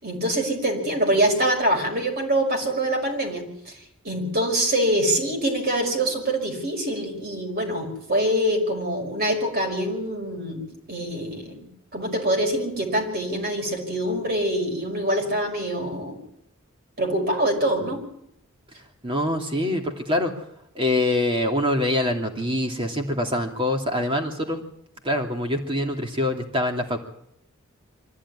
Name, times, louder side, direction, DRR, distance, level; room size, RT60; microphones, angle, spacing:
voice 1, 0.0-3.7 4.0-11.7 11.9-16.2 17.0-18.0, right 1 dB, 45° right, 1 dB, 5.8 m, -24 dB
voice 2, 19.0-20.3 20.7-24.6 25.0-27.0, left 1 dB, 25° right, 3 dB, 2.8 m, -24 dB
24.5 x 15.0 x 10.0 m, 0.76 s
head